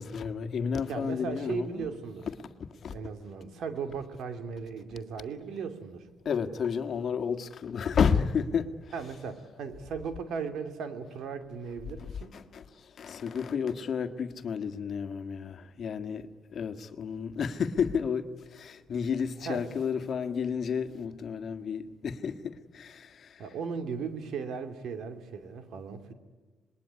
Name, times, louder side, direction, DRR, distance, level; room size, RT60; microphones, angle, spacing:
voice 1, 0.0-1.9 2.4-3.0 6.3-8.9 12.0-23.4, left 6 dB, 55° left, 1.7 m, -32 dB
voice 2, 0.9-2.3 2.9-6.1 8.9-12.3 19.4-19.6 23.4-26.1, right 6 dB, 75° right, 2.7 m, -37 dB
26.5 x 21.0 x 9.8 m
cardioid pair, 90°, 0 cm